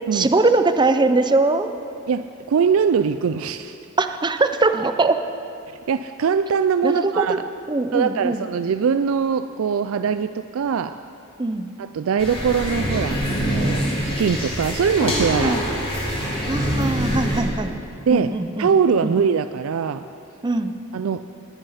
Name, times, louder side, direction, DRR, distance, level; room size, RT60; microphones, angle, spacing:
voice 1, 0.1-1.7 4.0-5.2 6.8-7.4 7.7-8.4 11.4-11.7 15.4-15.6 16.5-17.7 18.1-18.7 19.0-19.1 20.4-20.7, right 3 dB, 20° right, 9 dB, 0.6 m, -21 dB
voice 2, 2.1-3.8 5.9-7.5 7.9-11.0 11.8-15.6 18.1-18.3 18.6-20.1 20.9-21.2, right 6 dB, 75° right, 11 dB, 0.4 m, -22 dB
sound 1, 12.2-17.4, equal, 30° left, 2.8 m, -24 dB
20.0 x 8.8 x 5.7 m, 2.6 s
head